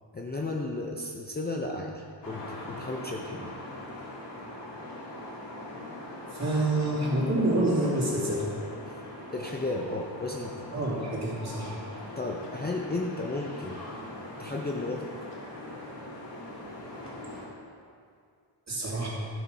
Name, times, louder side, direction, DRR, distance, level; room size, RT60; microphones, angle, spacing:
voice 1, 0.1-3.5 8.9-9.0 9.3-10.8 12.2-13.8 14.4-15.1, left 2 dB, 20° left, 0 dB, 0.6 m, -34 dB
sound 1, 2.2-17.5, left 1 dB, 60° left, 2.2 m, -41 dB
voice 2, 6.0-8.5 10.7-11.8 18.7-19.1, right 1 dB, 35° right, -6 dB, 2.6 m, -27 dB
12.5 x 6.0 x 5.4 m, 2.3 s
wide cardioid pair, 150°, 46 cm